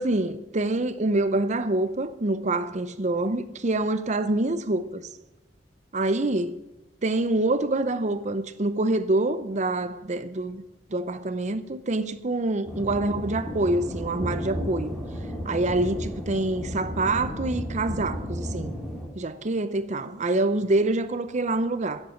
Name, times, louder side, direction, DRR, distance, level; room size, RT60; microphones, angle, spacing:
voice 1, 0.0-5.0 5.9-6.6 7.0-10.6 10.9-14.9 15.4-18.7 19.1-22.0, right 2 dB, 40° right, 0.7 m, -26 dB
sound 1, 12.7-19.1, equal, 5° right, 2.4 m, -33 dB
10.5 x 8.0 x 7.2 m
head